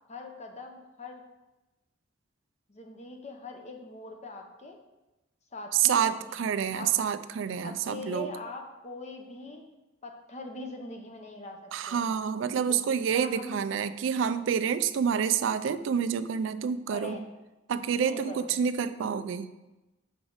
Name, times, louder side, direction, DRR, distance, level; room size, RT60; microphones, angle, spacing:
voice 1, 0.1-1.2 2.7-4.8 5.5-6.2 6.7-6.9 7.6-9.7 10.0-12.1 12.7-12.8 13.1-13.5 16.9-17.3 18.0-18.5, left 2 dB, 35° left, 3 dB, 0.8 m, -41 dB
voice 2, 5.7-8.3 11.7-17.2 17.7-19.5, right 7 dB, 75° right, 12 dB, 0.3 m, -28 dB
6.0 x 4.9 x 3.9 m, 1.0 s
head